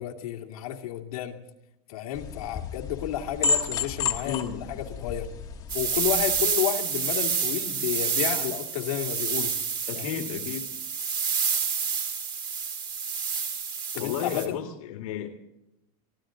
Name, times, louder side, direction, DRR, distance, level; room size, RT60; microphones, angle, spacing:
voice 1, 0.0-1.4 1.9-5.3 5.7-9.5 10.0-10.2 13.9-14.6, left 11 dB, 90° left, 2 dB, 2.3 m, -31 dB
sound 1, 2.1-6.4, left 4 dB, 20° left, 1.3 m, -31 dB
voice 2, 4.2-4.6 9.9-10.7 14.0-15.4, left 10 dB, 70° left, 4 dB, 2.0 m, -33 dB
sound 2, 5.7-14.5, right 6 dB, 25° right, 2.0 m, -29 dB
24.0 x 15.0 x 3.8 m, 0.87 s
supercardioid pair, 175°, 18 cm